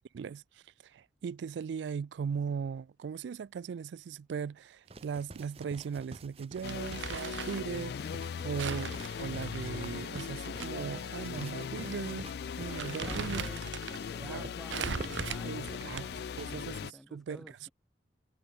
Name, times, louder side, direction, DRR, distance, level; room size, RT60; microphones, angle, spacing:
voice 1, 0.1-13.4 14.2-14.5 15.4-17.4, right 6 dB, 75° right, 0.3 m, -38 dB
sound 1, 4.9-16.5, right 2 dB, 35° right, 0.9 m, -49 dB
sound 2, 6.6-16.9, left 6 dB, 60° left, 0.3 m, -39 dB
Crumpling crinkling, 6.7-7.7 8.6-10.7 11.0-11.1 11.9-12.1 12.4-14.0 14.7-16.3, right 6 dB, 90° right, 0.8 m, -39 dB
voice 2, 13.0-13.7 14.0-17.7, equal, ahead, 1.1 m, -52 dB
head